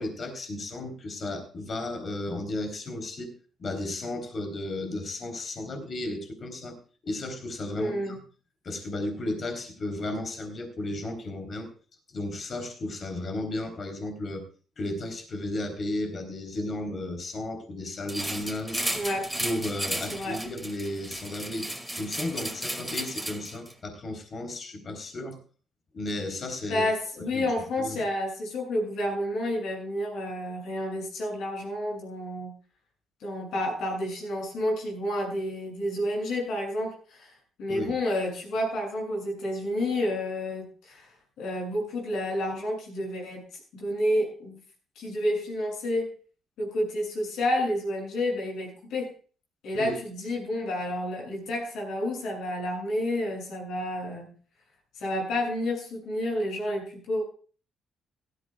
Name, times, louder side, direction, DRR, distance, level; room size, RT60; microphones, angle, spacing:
voice 1, 0.0-3.3 3.6-6.8 7.0-8.2 8.6-11.7 12.1-14.4 14.8-18.8 19.4-21.7 22.0-25.4 25.9-26.8 27.2-27.5 27.8-28.0 37.7-38.0 49.8-49.9, left 1 dB, 45° left, 6 dB, 3.8 m, -34 dB
voice 2, 7.8-8.2 18.9-19.3 20.1-20.4 26.7-32.5 33.2-41.1 41.4-43.4 43.7-44.6 45.0-46.1 46.6-49.1 49.6-54.4 55.0-57.2, left 1 dB, 80° left, 1 dB, 7.5 m, -30 dB
sound 1, 18.1-23.7, right 1 dB, 5° right, 2.4 m, -34 dB
17.0 x 13.5 x 2.4 m, 0.39 s
cardioid pair, 90°, 0 cm